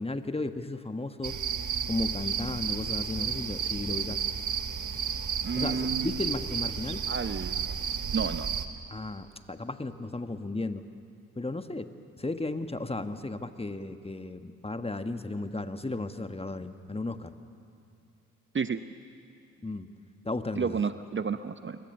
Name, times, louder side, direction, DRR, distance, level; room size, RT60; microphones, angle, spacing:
voice 1, 0.0-1.4 1.9-4.2 5.5-7.0 8.9-10.8 11.3-11.9 12.2-17.4 19.6-19.9 20.2-20.8, left 2 dB, 15° left, 9 dB, 1.4 m, -34 dB
sound 1, 1.2-8.6, right 7 dB, 50° right, 1.6 m, -32 dB
voice 2, 5.4-6.2 7.1-7.6 8.1-8.5 18.5-18.8 20.6-21.8, right 5 dB, 30° right, 11 dB, 0.9 m, -31 dB
26.5 x 24.0 x 6.9 m, 2.6 s
hypercardioid pair, 40°, 40 cm